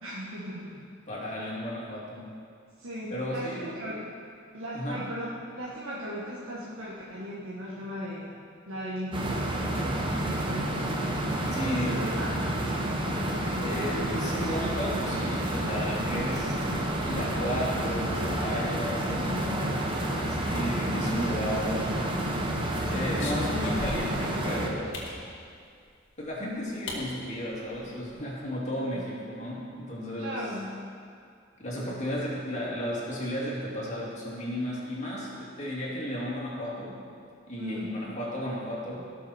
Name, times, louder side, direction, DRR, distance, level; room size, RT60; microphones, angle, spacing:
voice 1, 0.0-0.8 2.8-4.0 4.5-8.4 8.7-12.3 12.6-12.8 28.9-29.0 30.2-30.7 37.6-37.9, equal, 85° right, -7 dB, 1.6 m, -37 dB
voice 2, 1.1-2.3 3.1-3.8 4.7-5.1 11.5-12.0 13.6-16.6 17.0-19.9 20.3-22.0 22.9-25.1 26.2-30.5 31.6-37.0 37.5-39.1, equal, 35° left, -6 dB, 2.8 m, -34 dB
sound 1, 9.1-24.7, right 1 dB, 25° right, 1.1 m, -29 dB
sound 2, 22.7-24.2 24.9-25.2 26.3-26.4 26.9-27.0 27.4-27.5 27.7-28.1, left 2 dB, 65° left, 2.0 m, -39 dB
17.5 x 6.5 x 4.5 m, 2.3 s
head